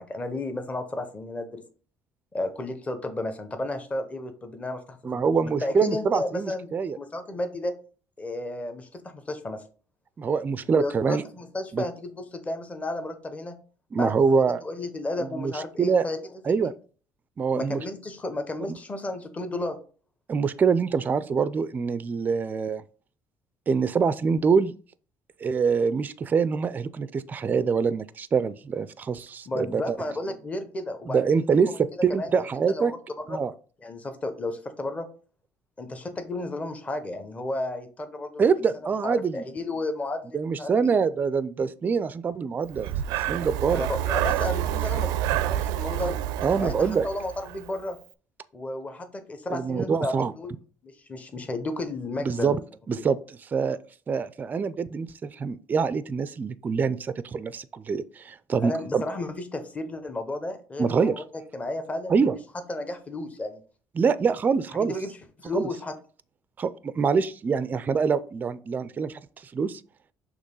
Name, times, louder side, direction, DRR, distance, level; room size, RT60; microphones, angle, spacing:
voice 1, 0.0-1.6 2.3-5.2 5.6-6.7 7.0-7.7 8.2-9.6 10.7-13.5 13.9-16.2 16.6-16.7 17.5-19.8 29.5-31.4 32.1-32.3 32.7-33.0 33.3-33.4 33.8-35.1 35.8-38.5 39.0-40.7 43.7-45.1 45.5-46.2 46.6-48.0 48.5-50.5 50.8-52.6 53.0-53.1 58.6-61.2 61.5-62.4 62.7-63.6 64.9-65.9, left 2 dB, 20° left, 0.9 m, -33 dB
voice 2, 5.0-7.0 10.2-11.2 11.7-11.8 13.9-14.6 15.2-16.1 16.4-16.7 17.4-17.8 20.3-22.8 23.7-24.7 25.4-30.0 31.1-32.9 33.3-33.5 38.4-39.4 40.3-43.9 46.4-47.1 49.5-50.3 52.2-52.6 52.9-53.8 54.1-59.0 60.8-61.2 62.1-62.4 64.0-64.9 65.5-65.7 66.6-69.8, right 5 dB, 25° right, 0.4 m, -25 dB
Breathing, 42.7-47.7, right 12 dB, 90° right, 0.4 m, -28 dB
6.3 x 3.0 x 5.4 m
cardioid pair, 120°, 6 cm